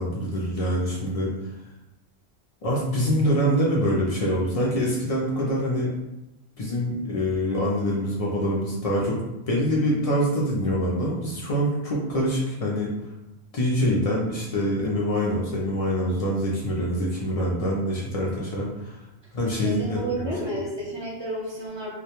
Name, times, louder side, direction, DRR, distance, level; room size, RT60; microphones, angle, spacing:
voice 1, 0.0-1.3 2.6-5.9 6.6-9.2 9.5-12.9 13.5-19.0 19.3-20.3, equal, 65° left, -4 dB, 0.3 m, -25 dB
voice 2, 19.6-21.9, equal, 30° right, -5 dB, 0.5 m, -30 dB
2.2 x 2.1 x 2.8 m, 0.94 s
omnidirectional pair, 1.2 m